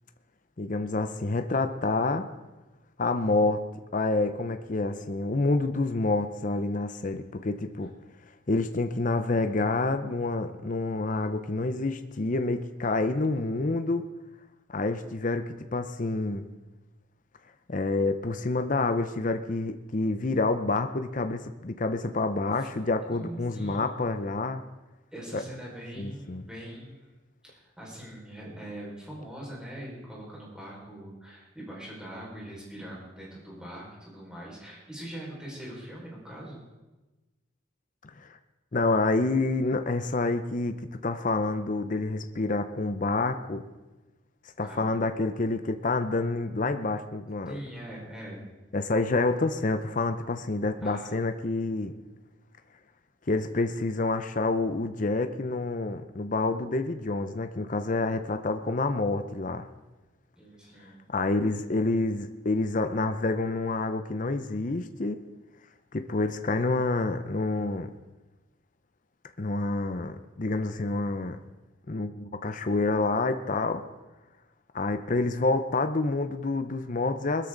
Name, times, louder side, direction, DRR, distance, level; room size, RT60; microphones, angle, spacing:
voice 1, 0.6-2.3 3.0-3.7 3.9-7.9 8.5-14.1 14.7-16.5 17.7-24.6 25.3-25.4 26.0-26.4 38.2-38.4 38.7-40.8 41.0-43.7 44.6-47.6 48.7-51.9 53.3-59.7 61.1-65.2 65.9-67.9 69.4-71.4 71.9-73.8 74.7-77.5, left 2 dB, 40° left, 8 dB, 0.7 m, -28 dB
voice 2, 23.1-23.9 25.1-27.1 27.4-36.6 44.6-44.9 47.5-48.4 50.8-51.2 60.4-61.0, right 1 dB, 5° right, -5 dB, 5.1 m, -42 dB
21.5 x 13.0 x 3.9 m, 1.1 s
head